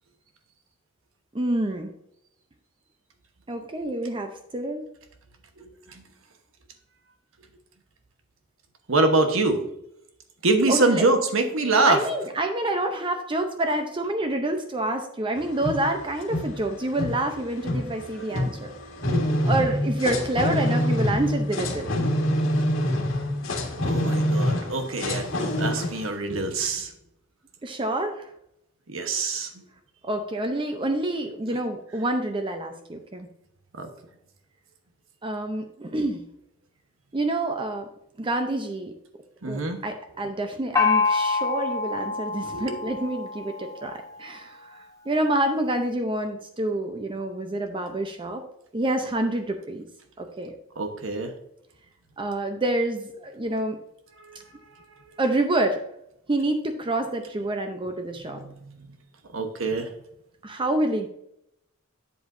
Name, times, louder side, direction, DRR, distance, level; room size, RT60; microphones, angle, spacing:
voice 1, 1.3-1.9 3.5-4.9 10.7-11.1 11.8-18.7 19.4-21.9 27.6-28.3 30.0-33.3 35.2-36.2 37.1-37.9 38.2-39.0 39.4-48.4 48.7-49.8 50.2-50.5 52.2-53.8 55.2-55.8 56.3-58.4 60.4-61.1, right 1 dB, 25° right, 5 dB, 0.6 m, -27 dB
voice 2, 8.9-9.6 10.4-12.0 19.1-19.2 23.8-25.2 25.6-26.9 28.9-29.5 33.8-33.9 39.4-39.8 42.5-42.7 50.8-51.3 58.3-58.5 59.3-59.9, right 3 dB, 80° right, 6 dB, 1.1 m, -24 dB
sound 1, 15.4-26.1, left 1 dB, 80° left, 1.6 m, -26 dB
Gong, 40.8-44.3, left 4 dB, 20° left, 0.9 m, -26 dB
8.2 x 7.7 x 2.6 m, 0.79 s
head